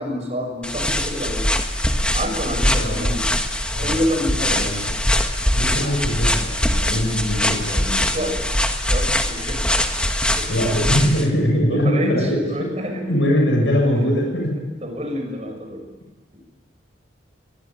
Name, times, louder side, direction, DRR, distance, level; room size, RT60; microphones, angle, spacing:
voice 1, 0.0-1.4 2.1-3.2 3.8-4.6 7.7-7.8 8.1-8.3 8.9-10.0 10.4-10.5 11.7-12.1 12.5-13.0 14.8-15.8, equal, 35° right, 4 dB, 6.4 m, -27 dB
sound 1, 0.6-11.3, left 1 dB, 5° left, 1.6 m, -22 dB
voice 2, 2.8-3.4 3.7-4.0 4.3-4.9 5.5-8.1 10.5-14.5, equal, 75° left, 0 dB, 7.8 m, -22 dB
24.0 x 21.0 x 9.0 m, 1.2 s
head